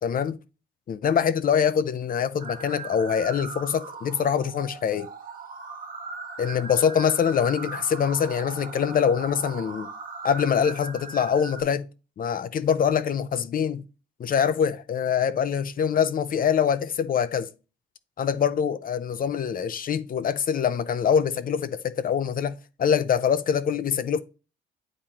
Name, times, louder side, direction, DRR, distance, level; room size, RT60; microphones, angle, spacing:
voice 1, 0.0-0.4 0.9-5.1 6.4-9.9 10.2-11.9 12.2-13.8 14.2-17.5 18.2-24.2, left 7 dB, 45° left, 0.5 m, -24 dB
sound 1, 2.4-11.6, right 4 dB, 45° right, 1.3 m, -39 dB
8.7 x 3.7 x 2.9 m
cardioid pair, 90°, 20 cm